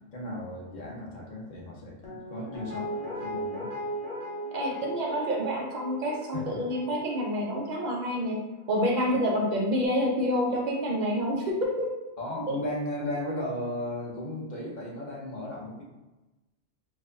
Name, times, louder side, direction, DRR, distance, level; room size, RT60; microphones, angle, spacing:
voice 1, 0.1-3.7 6.3-6.6 9.1-9.2 12.2-15.8, left 1 dB, 40° left, -3 dB, 0.9 m, -35 dB
Guitar, 2.0-9.0 9.4-9.5, equal, 65° left, 1.4 m, -38 dB
voice 2, 4.5-11.9 12.5-12.6, equal, 45° right, -2 dB, 0.7 m, -28 dB
4.4 x 2.7 x 2.6 m, 1.1 s
omnidirectional pair, 1.3 m